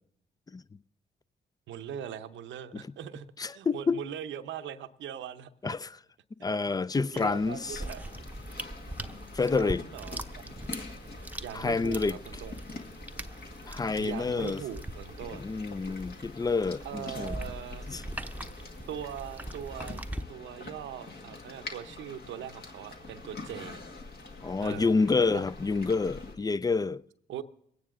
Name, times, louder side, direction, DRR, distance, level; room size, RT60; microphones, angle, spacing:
voice 1, 1.7-5.8 6.9-8.0 9.5-10.5 11.4-12.5 14.0-15.4 16.8-17.9 18.9-23.8 24.6-25.0 25.3-25.4 27.3-27.4, right 9 dB, 75° right, 0.7 m, -41 dB
voice 2, 3.4-4.0 5.6-6.0 6.4-7.8 9.3-9.8 11.5-12.2 13.7-14.6 15.3-17.4 17.9-18.0 24.4-27.0, left 4 dB, 20° left, 0.4 m, -28 dB
sound 1, 7.1-26.4, left 3 dB, 55° left, 1.9 m, -45 dB
sound 2, 7.7-20.2, right 1 dB, 10° right, 0.8 m, -41 dB
23.0 x 9.4 x 3.7 m
supercardioid pair, 45°, 20 cm